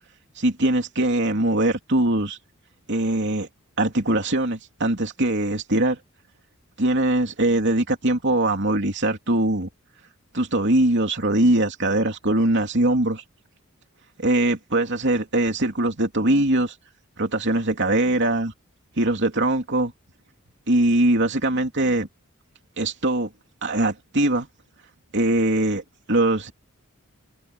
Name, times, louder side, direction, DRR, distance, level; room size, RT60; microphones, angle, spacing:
voice 1, 0.4-2.4 2.9-3.5 3.8-6.0 6.8-9.7 10.3-13.2 14.2-16.7 17.2-18.5 19.0-19.9 20.7-22.1 22.8-23.3 23.6-24.5 25.1-26.5, right 1 dB, 55° right, 3.1 m, -22 dB
open air
head